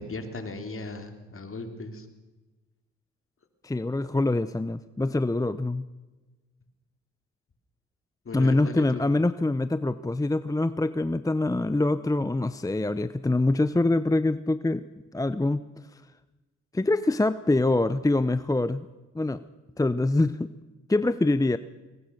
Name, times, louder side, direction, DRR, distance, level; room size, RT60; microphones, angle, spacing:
voice 1, 0.0-2.1 8.3-9.0, left 2 dB, 45° left, 7 dB, 3.5 m, -37 dB
voice 2, 3.6-5.9 8.3-14.8 15.1-15.6 15.9-16.0 16.7-18.8 19.1-19.4 19.8-20.5 20.9-21.6, left 2 dB, 10° left, 14 dB, 0.7 m, -24 dB
21.0 x 19.5 x 6.5 m, 1.2 s
supercardioid pair, 65°, 30 cm